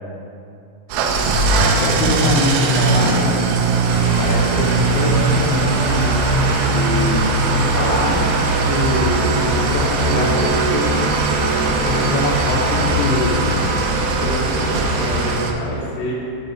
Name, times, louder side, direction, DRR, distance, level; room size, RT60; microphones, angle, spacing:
Engine starting / Idling, 0.9-15.5, right 4 dB, 85° right, 2.7 m, -19 dB
voice 1, 1.6-3.4 4.2-6.1 6.7-8.2 8.7-11.0 11.8-13.7, left 2 dB, 80° left, -1 dB, 2.7 m, -23 dB
sound 1, 3.8-15.3, equal, 60° right, 1.8 m, -26 dB
voice 2, 14.1-16.1, equal, 65° left, -6 dB, 1.7 m, -27 dB
7.0 x 3.8 x 5.4 m, 2.5 s
omnidirectional pair, 4.7 m